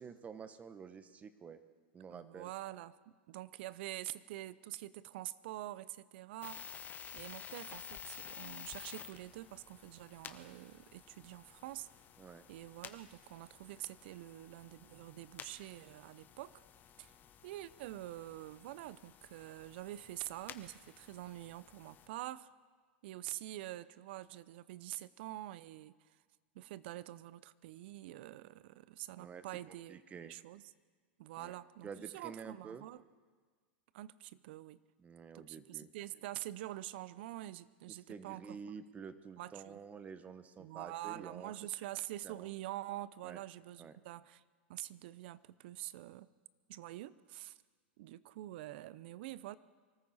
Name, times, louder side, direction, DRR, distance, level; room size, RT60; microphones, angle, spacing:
voice 1, 0.0-1.6 1.9-2.5 12.2-12.4 29.2-30.3 31.4-31.6 31.8-32.9 35.0-35.9 38.1-41.5 42.2-42.5 43.2-43.4 43.8-43.9, right 6 dB, 25° right, 12 dB, 1.0 m, -49 dB
voice 2, 2.1-3.0 3.3-11.9 12.5-16.5 17.0-17.1 17.4-22.5 23.0-25.9 26.5-30.6 31.2-33.0 33.9-34.8 35.3-38.6 39.4-39.8 40.6-44.4 44.7-46.3 46.7-47.6 48.0-49.6, right 15 dB, 60° right, 18 dB, 0.6 m, -46 dB
sound 1, 6.4-22.1, left 8 dB, 30° left, 1.1 m, -53 dB
24.0 x 14.0 x 4.2 m, 1.5 s
hypercardioid pair, 105°, 6 cm